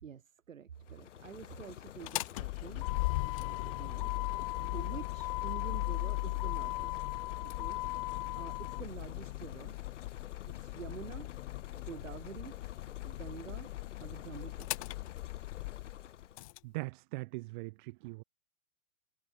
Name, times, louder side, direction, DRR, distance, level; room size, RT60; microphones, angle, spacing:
voice 1, 0.0-2.9 3.4-4.1 4.6-7.2 7.6-7.8 8.3-9.8 10.4-11.3 11.7-12.6 13.0-13.7 14.0-14.9, right 8 dB, 65° right, 2.8 m, -48 dB
sound 1, 0.7-16.5, left 10 dB, 55° left, 7.5 m, -50 dB
Motor vehicle (road), 1.9-16.6, left 22 dB, 25° left, 0.6 m, -38 dB
voice 2, 16.6-18.2, right 24 dB, 35° right, 1.3 m, -41 dB
figure-of-eight pair, 105°, 43 cm